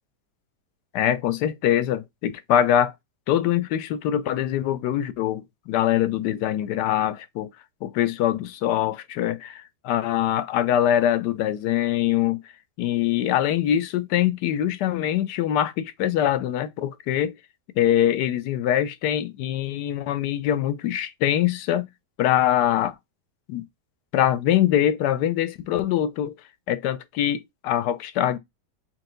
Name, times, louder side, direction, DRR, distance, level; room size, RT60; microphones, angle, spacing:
voice 1, 0.9-2.9 3.3-7.5 7.8-12.4 12.8-17.3 17.8-21.9 22.2-22.9 23.5-23.6 24.1-26.3 26.7-28.4, left 11 dB, 85° left, 1.2 m, -23 dB
4.5 x 2.7 x 3.7 m
omnidirectional pair, 1.7 m